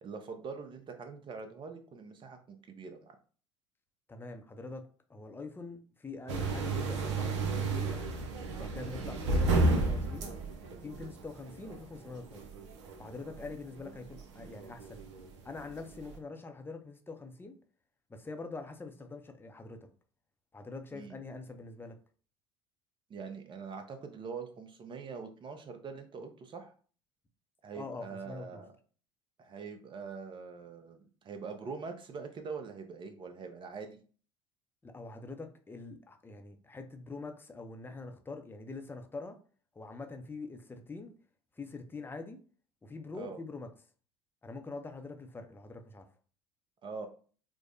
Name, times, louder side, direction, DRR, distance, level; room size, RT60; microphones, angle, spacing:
voice 1, 0.0-3.2 20.9-21.2 23.1-26.7 27.6-28.7 29.4-34.0 43.2-43.4 46.8-47.1, right 5 dB, 30° right, 0.8 m, -43 dB
voice 2, 4.1-8.0 8.6-10.3 10.8-12.5 13.0-15.0 15.4-17.6 18.1-19.9 20.5-22.0 27.7-28.6 34.8-39.4 39.7-41.1 41.6-42.4 42.8-43.7 44.4-46.1, left 3 dB, 15° left, 0.6 m, -44 dB
sound 1, 6.3-16.2, right 2 dB, 70° right, 0.7 m, -33 dB
4.7 x 2.1 x 2.6 m
figure-of-eight pair, 70°, 16 cm